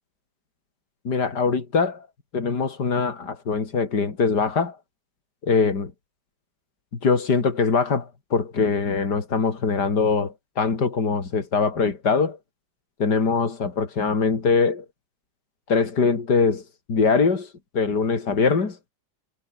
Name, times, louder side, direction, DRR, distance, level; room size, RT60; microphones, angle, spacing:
voice 1, 1.1-2.1 2.3-4.8 5.4-5.9 7.0-12.4 13.0-14.9 15.7-16.6 16.9-17.5 17.7-18.8, left 4 dB, 70° left, 3.6 m, -22 dB
omnidirectional pair, 1.9 m